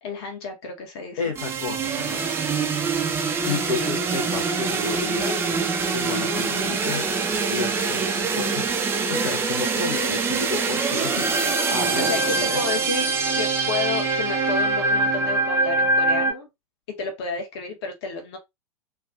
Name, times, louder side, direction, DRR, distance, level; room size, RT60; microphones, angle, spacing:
voice 1, 0.0-1.2 10.9-11.5 11.9-13.1 13.3-16.5 16.9-18.4, left 4 dB, 45° left, 1.1 m, -31 dB
voice 2, 1.2-2.3 3.5-5.4 5.9-7.0 7.5-8.7 9.1-11.1 11.7-12.9, left 4 dB, 60° left, 0.8 m, -31 dB
sound 1, 1.4-16.3, right 4 dB, 10° right, 0.5 m, -24 dB
3.3 x 2.4 x 2.4 m
figure-of-eight pair, 95°, 19 cm